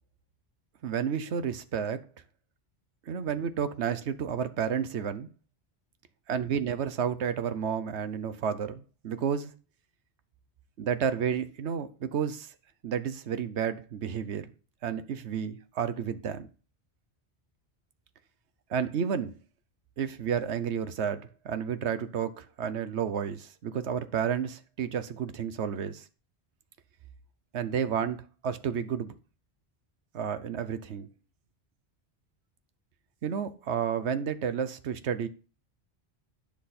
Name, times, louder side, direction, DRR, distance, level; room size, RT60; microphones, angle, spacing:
voice 1, 0.8-2.0 3.1-5.3 6.3-9.5 10.8-12.5 12.8-14.5 14.8-16.5 18.7-19.3 20.0-26.0 27.5-28.2 28.4-29.1 30.1-31.1 33.2-35.3, right 7 dB, 85° right, 1.1 m, -31 dB
9.9 x 6.0 x 4.2 m
omnidirectional pair, 1.1 m